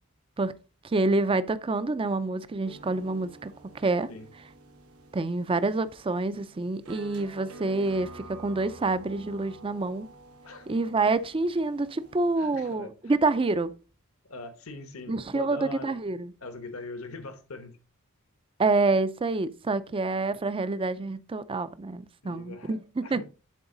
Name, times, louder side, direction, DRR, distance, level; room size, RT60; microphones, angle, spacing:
voice 1, 0.8-4.1 5.1-10.1 10.7-13.7 15.1-16.3 18.6-23.2, right 3 dB, 25° right, 0.4 m, -27 dB
sound 1, 2.6-12.7, right 2 dB, 90° right, 1.1 m, -49 dB
voice 2, 12.4-12.9 14.3-16.0 16.4-17.7 22.2-22.8 23.0-23.2, left 3 dB, 70° left, 1.1 m, -41 dB
11.0 x 3.9 x 3.8 m
head